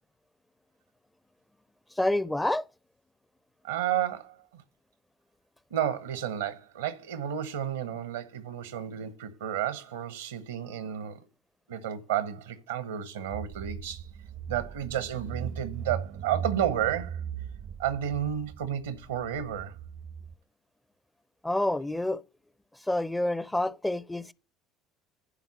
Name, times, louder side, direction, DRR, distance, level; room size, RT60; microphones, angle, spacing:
voice 1, 2.0-2.6 21.4-22.2 22.9-24.3, left 1 dB, 10° left, 0.5 m, -28 dB
voice 2, 3.6-4.6 5.7-11.2 11.7-14.1 14.5-17.2 17.8-19.8, right 10 dB, 85° right, 1.0 m, -32 dB
Car / Engine, 13.3-20.3, right 7 dB, 55° right, 0.6 m, -39 dB
11.0 x 3.9 x 7.2 m
hypercardioid pair, 65°, 0 cm